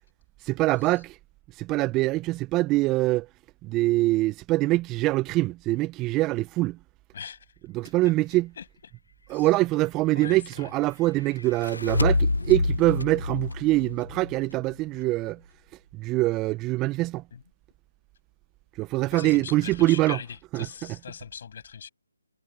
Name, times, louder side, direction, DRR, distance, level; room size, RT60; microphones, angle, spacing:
voice 1, 0.4-1.2 1.5-3.3 3.6-6.8 7.7-8.5 9.3-15.4 15.9-17.2 18.7-20.2 20.5-20.7, right 19 dB, 15° right, 0.7 m, -24 dB
voice 2, 7.1-7.5 7.8-7.9 8.6-8.7 9.3-9.5 10.1-10.7 17.3-17.4 19.1-21.9, left 7 dB, 50° left, 7.8 m, -40 dB
sound 1, 11.4-14.7, left 3 dB, 80° left, 0.9 m, -27 dB
figure-of-eight pair, 145°, 0 cm